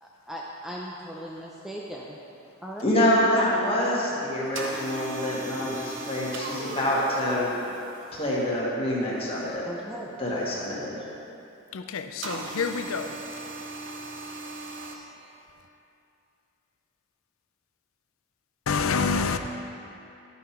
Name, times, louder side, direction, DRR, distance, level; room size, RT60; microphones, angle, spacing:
voice 1, 0.0-2.2 2.6-2.9 9.7-10.1, equal, ahead, 0.5 m, -38 dB
voice 2, 2.8-7.5 8.1-9.6 10.2-11.0, left 1 dB, 25° left, 1.5 m, -26 dB
sound 1, 4.5-8.5 12.2-15.0, right 2 dB, 55° right, 0.8 m, -38 dB
voice 3, 11.7-13.1 18.7-19.4, left 5 dB, 65° left, 0.5 m, -27 dB
11.0 x 5.6 x 4.4 m
head